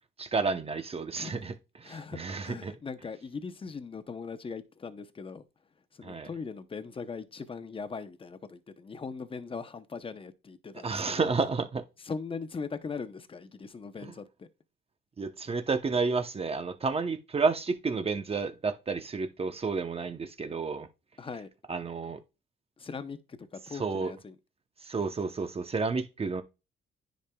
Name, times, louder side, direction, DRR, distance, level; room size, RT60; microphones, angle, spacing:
voice 1, 0.2-1.5 1.8-2.7 6.0-6.3 10.8-11.8 14.0-14.1 15.2-20.9 21.7-22.2 23.8-24.1 24.8-26.4, right 4 dB, 30° right, 0.8 m, -31 dB
voice 2, 1.8-5.4 5.9-11.3 12.0-14.5 21.2-21.5 22.8-24.4, left 5 dB, 25° left, 0.7 m, -40 dB
9.9 x 5.1 x 2.3 m
cardioid pair, 90°, 20 cm